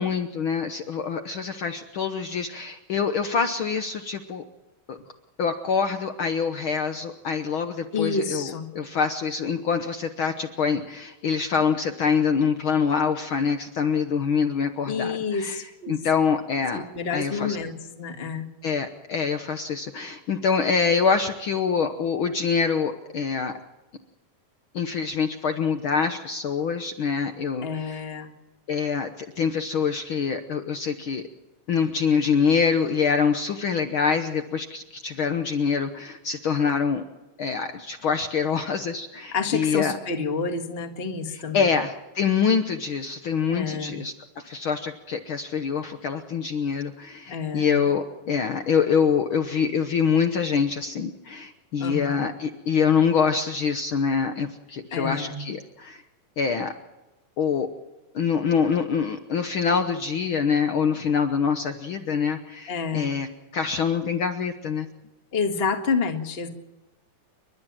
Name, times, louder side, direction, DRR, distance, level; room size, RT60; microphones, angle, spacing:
voice 1, 0.0-4.4 4.9-5.0 5.4-15.6 15.9-16.8 17.1-17.6 18.6-23.5 24.7-28.0 28.7-31.2 31.7-37.0 37.4-40.0 41.3-44.1 44.4-56.0 56.4-56.7 57.4-57.7 58.1-63.3 63.5-64.9, left 6 dB, 80° left, 7 dB, 1.1 m, -25 dB
voice 2, 7.9-8.7 14.8-16.0 16.7-18.5 27.6-28.3 39.3-41.7 43.5-44.0 47.3-47.8 51.8-52.2 54.9-55.4 62.7-63.1 65.3-66.5, left 5 dB, 25° left, 5 dB, 1.4 m, -29 dB
29.5 x 13.0 x 7.6 m, 1.1 s
omnidirectional pair, 3.8 m